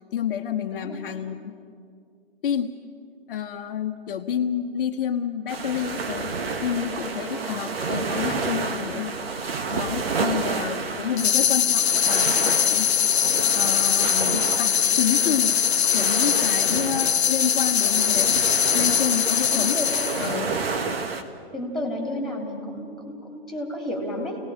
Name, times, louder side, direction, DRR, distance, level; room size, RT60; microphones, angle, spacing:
voice 1, 0.1-1.6 2.4-2.7 3.3-6.3 6.6-12.9 13.5-15.6 15.9-18.4 18.7-19.8 20.2-20.5, left 8 dB, 55° left, 4 dB, 1.0 m, -29 dB
sound 1, 5.5-21.2, right 4 dB, 65° right, 1.8 m, -30 dB
voice 2, 7.2-7.6 19.5-19.9 20.1-20.6 21.5-24.4, left 1 dB, ahead, 2 dB, 3.3 m, -32 dB
sound 2, 11.2-20.3, left 9 dB, 80° left, 0.6 m, -22 dB
29.0 x 18.5 x 5.0 m, 2.3 s
hypercardioid pair, 130°, 32 cm